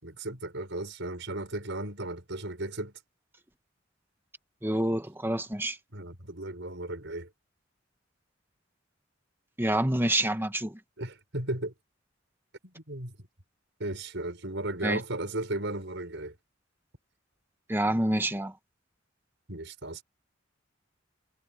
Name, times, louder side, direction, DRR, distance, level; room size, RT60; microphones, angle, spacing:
voice 1, 0.0-2.9 5.9-7.3 11.0-11.7 12.6-13.1 13.8-16.3 19.5-20.0, right 2 dB, 65° right, 6.7 m, -35 dB
voice 2, 4.6-5.8 9.6-10.8 14.8-15.0 17.7-18.5, right 1 dB, 10° right, 1.5 m, -27 dB
head